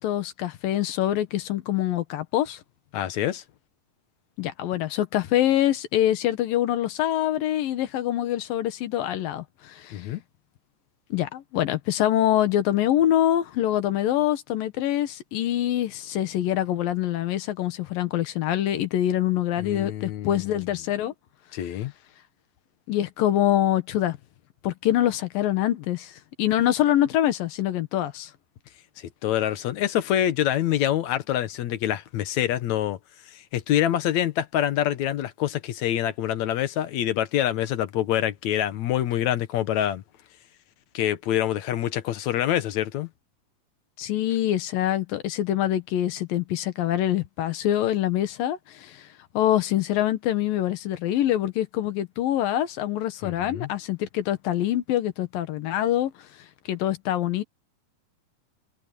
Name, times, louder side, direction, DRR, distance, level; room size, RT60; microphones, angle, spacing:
voice 1, 0.0-2.6 4.4-10.1 11.1-21.1 22.9-24.2 24.6-28.3 44.0-49.1 49.3-56.1 56.7-57.4, left 12 dB, 90° left, 3.1 m, -25 dB
voice 2, 2.9-3.4 9.9-10.2 19.6-20.4 21.5-21.9 29.0-33.0 33.3-40.0 40.9-43.1 53.2-53.7, left 11 dB, 65° left, 2.1 m, -26 dB
omnidirectional pair, 3.9 m